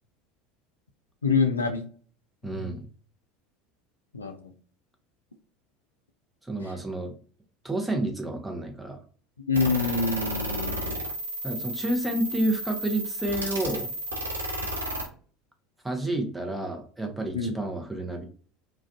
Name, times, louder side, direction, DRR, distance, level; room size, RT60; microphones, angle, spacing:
voice 1, 1.2-1.8 2.5-2.7 4.1-4.5 9.4-10.8 17.3-17.5, left 4 dB, 85° left, 5 dB, 0.3 m, -26 dB
voice 2, 2.4-2.9 6.5-7.1 7.6-9.0 11.4-13.9 15.8-18.2, right 1 dB, 10° right, 3 dB, 0.7 m, -30 dB
sound 1, 9.5-15.1, right 1 dB, 85° right, 0.6 m, -32 dB
2.4 x 2.3 x 2.3 m, 0.42 s
figure-of-eight pair, 70°, 0 cm